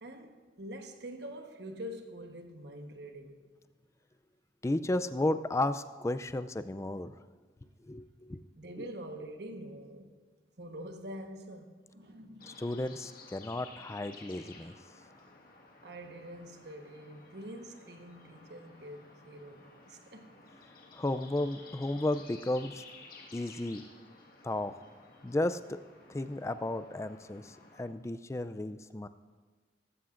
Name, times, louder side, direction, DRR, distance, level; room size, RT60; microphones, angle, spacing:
voice 1, 0.0-3.4 8.6-10.1 10.6-12.6 15.8-20.3, right 1 dB, 65° right, 1.2 m, -45 dB
voice 2, 4.6-7.1 7.9-8.0 8.3-8.4 12.5-14.7 20.9-22.8 23.3-23.8 24.4-24.8 25.2-25.8 26.1-29.1, left 1 dB, 15° left, 0.3 m, -33 dB
sound 1, 12.4-27.8, left 3 dB, 50° left, 1.6 m, -54 dB
18.5 x 15.0 x 2.5 m
head